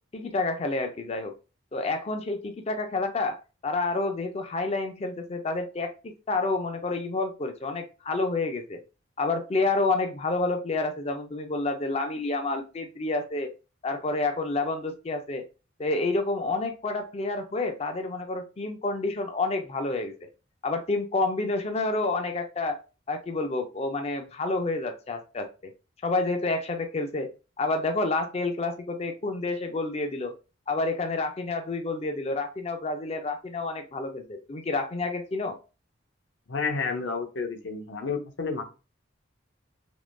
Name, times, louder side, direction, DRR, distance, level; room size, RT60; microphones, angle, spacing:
voice 1, 0.1-1.3 1.7-3.4 3.6-8.8 9.2-13.5 13.8-15.4 15.8-20.3 20.6-22.8 23.1-25.7 26.0-27.3 27.6-30.3 30.7-35.6, left 3 dB, 30° left, 6 dB, 0.4 m, -29 dB
voice 2, 36.5-38.6, left 4 dB, 70° left, 5 dB, 0.7 m, -30 dB
3.5 x 3.0 x 2.5 m, 0.32 s
head